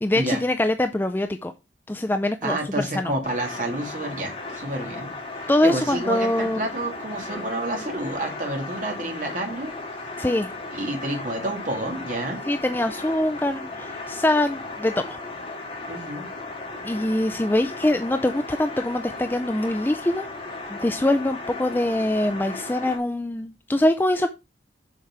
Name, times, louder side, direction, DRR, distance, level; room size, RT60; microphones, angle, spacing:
voice 1, 0.0-1.5 1.9-2.6 2.9-3.1 5.5-6.6 10.2-10.5 12.5-15.2 16.8-20.3 20.7-24.3, left 1 dB, 10° left, 8 dB, 0.4 m, -23 dB
voice 2, 2.4-9.7 10.7-12.4 15.9-16.3, right 1 dB, 45° right, 2 dB, 2.4 m, -29 dB
sound 1, 3.2-23.0, left 2 dB, 30° left, 2.7 m, -36 dB
7.3 x 4.8 x 5.8 m, 0.26 s
head